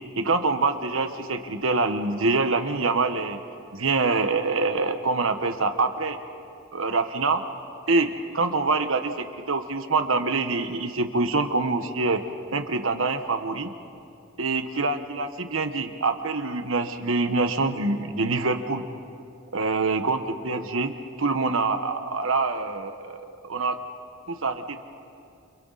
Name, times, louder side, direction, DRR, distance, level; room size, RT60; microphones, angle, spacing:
voice 1, 0.2-3.4 3.7-6.2 6.7-7.4 7.9-12.2 12.5-13.7 14.4-18.8 19.5-20.9 21.2-23.2 23.4-23.8 24.3-24.8, right 3 dB, 80° right, 7 dB, 1.3 m, -25 dB
29.5 x 27.0 x 4.1 m, 2.5 s
head